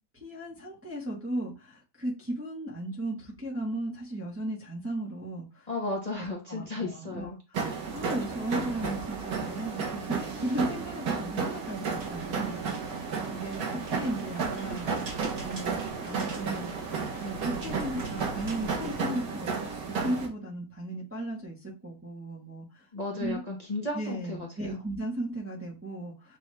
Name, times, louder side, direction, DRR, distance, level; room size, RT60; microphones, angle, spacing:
voice 1, 0.1-5.7 6.2-14.9 15.1-16.9 17.2-22.9 23.2-23.4 23.9-26.4, right 1 dB, 10° right, -4 dB, 0.9 m, -36 dB
voice 2, 5.7-7.4 22.9-24.8, left 2 dB, 30° left, -2 dB, 0.9 m, -34 dB
sound 1, 7.5-20.3, right 5 dB, 80° right, 1.6 m, -33 dB
sound 2, 12.0-19.0, right 3 dB, 45° right, 1.2 m, -41 dB
6.9 x 2.4 x 3.2 m, 0.29 s
omnidirectional pair, 1.6 m